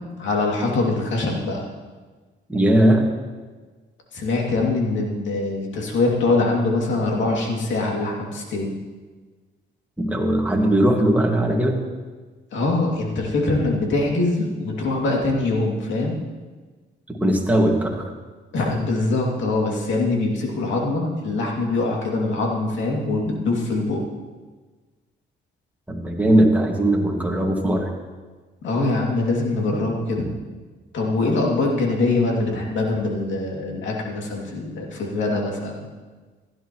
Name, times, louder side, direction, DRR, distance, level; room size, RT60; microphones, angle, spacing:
voice 1, 0.2-1.6 4.1-8.7 12.5-16.2 18.5-24.0 28.6-30.3 30.9-35.8, left 2 dB, 70° left, -1 dB, 2.6 m, -23 dB
voice 2, 2.5-3.0 10.0-11.8 17.1-18.0 25.9-27.9, right 1 dB, 5° right, 0 dB, 2.0 m, -19 dB
15.5 x 11.0 x 3.1 m, 1.3 s
cardioid pair, 90°, 20 cm